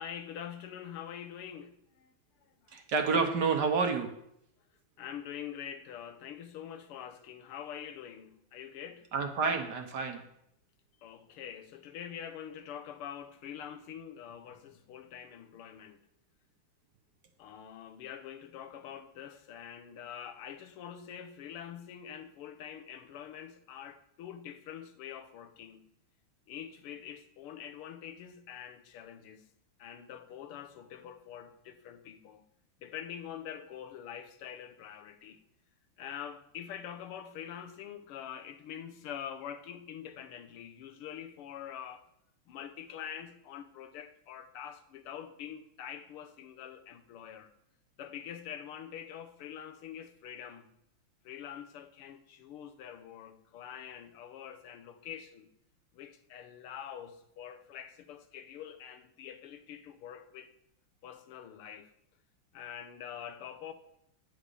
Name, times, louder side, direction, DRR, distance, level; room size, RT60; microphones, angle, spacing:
voice 1, 0.0-2.1 2.6-2.8 5.0-9.1 11.0-16.0 17.4-25.9 26.5-29.4 29.8-32.5 32.8-35.4 36.0-42.1 42.5-47.5 48.0-50.7 51.3-55.5 55.9-60.5 61.0-61.9 62.5-63.7, left 9 dB, 85° left, 1.7 m, -45 dB
voice 2, 2.7-4.1 9.1-10.2, right 5 dB, 60° right, 1.3 m, -29 dB
9.5 x 5.0 x 6.6 m
omnidirectional pair, 2.4 m